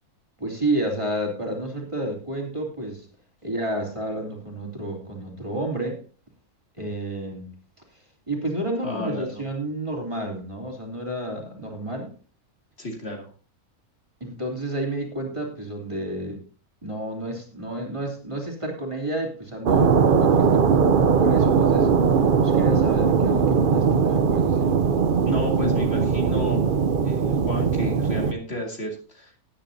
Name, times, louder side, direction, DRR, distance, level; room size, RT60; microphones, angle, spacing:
voice 1, 0.4-3.1 3.4-6.0 6.8-7.5 7.9-8.0 8.3-12.1 14.2-16.4 16.8-20.6 21.2-21.9 22.4-24.8, right 1 dB, 20° right, 0 dB, 3.2 m, -30 dB
voice 2, 8.8-9.4 12.8-13.3 25.2-29.3, left 1 dB, 45° left, 1 dB, 2.5 m, -32 dB
sound 1, 19.7-28.3, right 6 dB, 45° right, 0.7 m, -20 dB
18.5 x 10.0 x 2.7 m, 0.35 s
omnidirectional pair, 1.6 m